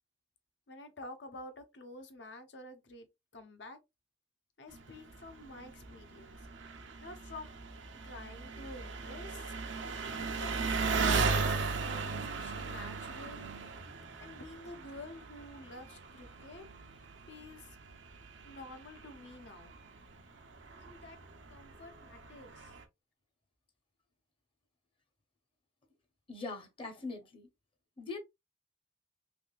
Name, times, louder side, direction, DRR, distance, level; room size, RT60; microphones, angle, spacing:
voice 1, 0.7-3.1 3.3-3.8 4.6-6.4 7.0-7.5 8.0-9.5 10.4-10.5 11.0-13.5 14.2-16.6 17.3-17.8 18.4-19.7 20.8-21.2 21.5-22.7, left 2 dB, 70° left, 0.8 m, -49 dB
Engine, 4.7-22.8, right 4 dB, 90° right, 0.7 m, -38 dB
voice 2, 26.3-27.5 28.0-28.2, left 3 dB, 30° left, 0.8 m, -42 dB
3.5 x 3.0 x 2.3 m
head